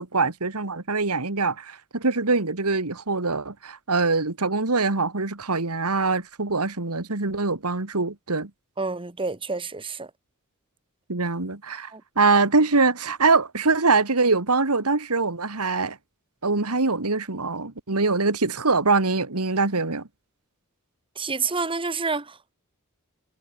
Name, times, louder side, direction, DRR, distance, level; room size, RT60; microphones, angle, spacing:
voice 1, 0.0-8.5 11.1-16.0 16.4-20.0, right 3 dB, 85° right, 2.1 m, -23 dB
voice 2, 8.8-10.1 11.9-12.0 21.1-22.5, right 4 dB, 25° right, 1.5 m, -29 dB
head